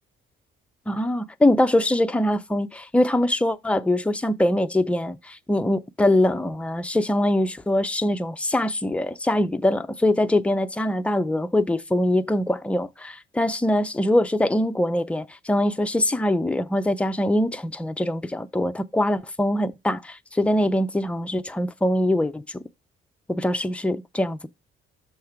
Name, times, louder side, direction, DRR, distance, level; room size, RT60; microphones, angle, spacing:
voice 1, 0.9-22.6 23.3-24.5, left 1 dB, 5° left, 0.4 m, -23 dB
6.5 x 3.5 x 5.7 m
cardioid pair, 150°, 21 cm